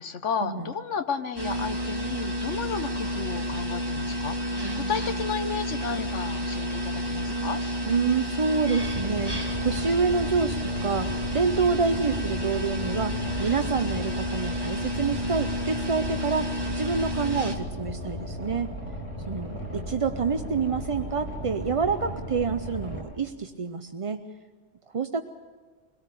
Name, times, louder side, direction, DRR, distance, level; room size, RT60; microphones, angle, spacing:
voice 1, 0.0-7.6, left 6 dB, 70° left, 9 dB, 1.4 m, -33 dB
sound 1, 1.4-17.6, equal, 20° right, 1.6 m, -30 dB
voice 2, 4.6-5.1 7.8-18.7 19.3-24.2 24.9-25.2, right 5 dB, 40° right, 8 dB, 0.5 m, -28 dB
Boat Water vehicle, 8.7-23.0, equal, 55° left, 5.3 m, -36 dB
23.0 x 17.5 x 6.8 m, 1.5 s
omnidirectional pair, 1.3 m